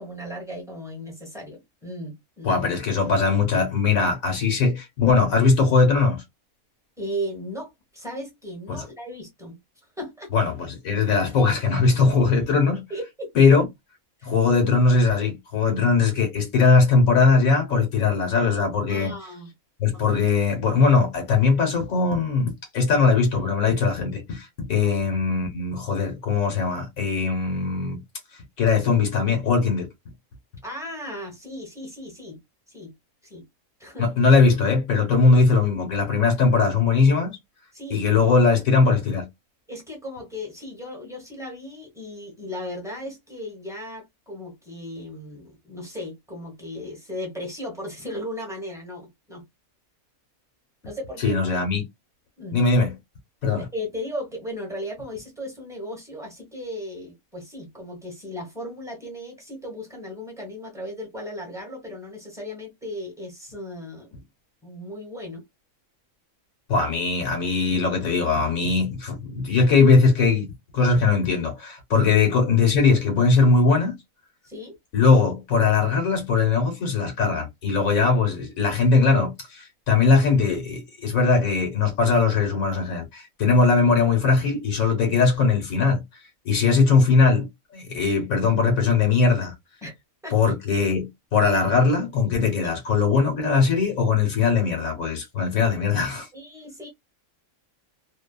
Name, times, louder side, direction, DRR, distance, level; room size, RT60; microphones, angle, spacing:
voice 1, 0.0-2.6 7.0-9.6 10.0-10.3 12.9-13.3 14.2-14.3 18.9-19.5 24.8-25.0 30.6-32.4 32.7-32.9 33.2-33.4 33.8-34.1 37.7-38.0 39.7-49.4 50.8-51.4 52.4-52.6 53.5-64.2 64.6-65.4 72.0-72.1 74.4-74.8 86.6-86.8 89.8-89.9 90.2-90.5 96.3-96.9, equal, 5° right, 0.9 m, -36 dB
voice 2, 2.4-6.2 8.7-8.8 10.3-12.8 13.3-13.7 14.2-19.2 19.8-28.0 28.6-29.9 34.0-37.4 37.9-39.3 51.2-51.9 52.5-52.9 53.4-53.7 66.7-74.0 74.9-86.0 86.4-87.5 87.7-89.5 90.3-96.3, left 4 dB, 75° left, 1.3 m, -20 dB
2.7 x 2.2 x 2.2 m
omnidirectional pair, 1.5 m